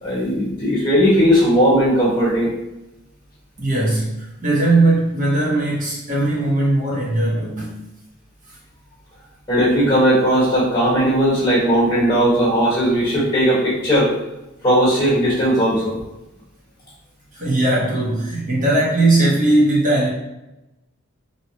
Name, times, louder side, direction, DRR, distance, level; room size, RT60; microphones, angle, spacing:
voice 1, 0.0-2.5 9.5-14.1 14.6-15.9, equal, 20° left, -8 dB, 1.2 m, -17 dB
voice 2, 3.6-7.8 17.3-20.1, right 2 dB, 40° right, -6 dB, 0.9 m, -18 dB
2.8 x 2.3 x 2.8 m, 0.93 s
head